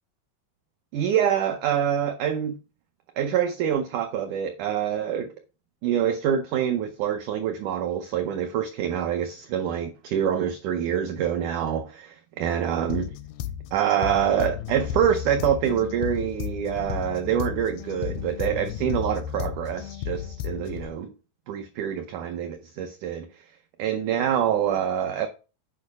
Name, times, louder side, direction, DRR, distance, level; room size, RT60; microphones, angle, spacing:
voice 1, 0.9-2.5 3.2-5.3 5.8-13.1 13.7-21.1 21.5-23.5 23.8-25.3, right 9 dB, 85° right, 1.7 m, -26 dB
sound 1, 12.9-20.9, left 10 dB, 85° left, 2.4 m, -33 dB
8.9 x 5.3 x 4.8 m
omnidirectional pair, 4.5 m